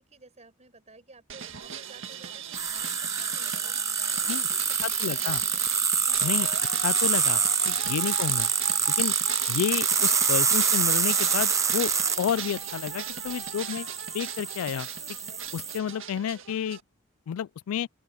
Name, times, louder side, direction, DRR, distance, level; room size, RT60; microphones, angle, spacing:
voice 1, 0.0-6.6 13.6-14.0, right 4 dB, 35° right, 5.5 m, -53 dB
sound 1, 1.3-16.8, right 8 dB, 65° right, 1.9 m, -38 dB
sound 2, 2.5-15.8, right 6 dB, 15° right, 0.5 m, -26 dB
voice 2, 4.8-5.4 6.2-6.5 6.8-8.5 8.9-9.2 9.5-11.9 12.2-13.8 14.1-14.9 15.5-16.8 17.3-17.9, left 8 dB, 80° left, 0.3 m, -30 dB
open air
head